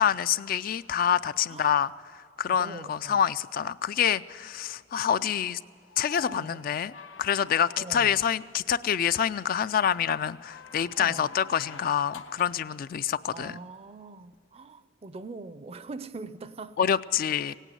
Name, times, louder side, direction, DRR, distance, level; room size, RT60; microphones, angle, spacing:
voice 1, 0.0-1.9 2.4-5.6 6.0-6.9 7.2-13.6 16.8-17.5, left 8 dB, 50° left, 0.3 m, -26 dB
voice 2, 2.5-3.2 5.2-5.5 6.2-6.6 7.8-8.2 11.0-11.3 13.3-16.8 17.5-17.6, right 3 dB, 30° right, 0.5 m, -43 dB
sound 1, 5.8-8.4 10.2-12.7 14.3-14.4, left 5 dB, 85° left, 0.9 m, -47 dB
17.5 x 9.1 x 9.2 m
head